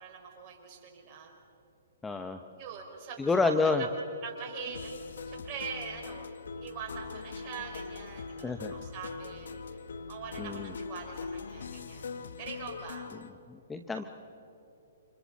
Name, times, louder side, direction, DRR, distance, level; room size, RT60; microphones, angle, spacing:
voice 1, 0.0-1.3 2.6-3.5 4.2-4.9 5.3-9.8 10.1-12.1 12.4-13.1, right 6 dB, 35° right, 0 dB, 5.3 m, -43 dB
voice 2, 2.0-2.4 3.2-3.8 8.4-8.7 10.4-10.7 13.5-14.0, left 3 dB, 10° left, 7 dB, 0.8 m, -29 dB
sound 1, 4.7-13.3, left 5 dB, 75° left, 1.2 m, -41 dB
30.0 x 26.5 x 4.2 m, 2.7 s
hypercardioid pair, 145°, 0 cm